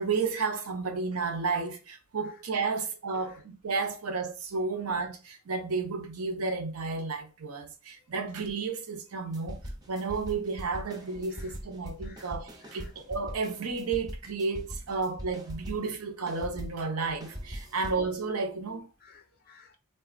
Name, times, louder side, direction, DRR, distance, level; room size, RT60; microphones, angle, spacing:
voice 1, 0.0-9.6 9.9-18.9, right 4 dB, 75° right, 0.6 m, -32 dB
sound 1, 9.3-16.0 16.3-18.1, equal, 20° right, 0.6 m, -42 dB
voice 2, 19.0-19.8, left 5 dB, 45° left, 0.4 m, -56 dB
3.8 x 2.3 x 2.4 m
head